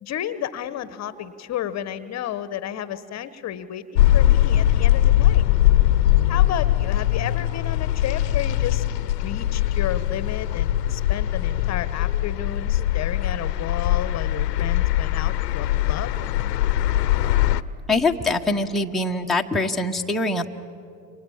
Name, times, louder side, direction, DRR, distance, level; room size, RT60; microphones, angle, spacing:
voice 1, 0.0-5.4 6.3-8.8 9.2-16.2, left 11 dB, 35° left, 14 dB, 1.1 m, -32 dB
sound 1, 3.9-17.6, left 13 dB, 70° left, 0.9 m, -21 dB
voice 2, 17.9-20.5, left 2 dB, ahead, 1 dB, 1.1 m, -23 dB
29.0 x 25.5 x 7.2 m, 2.6 s
hypercardioid pair, 85°, 50 cm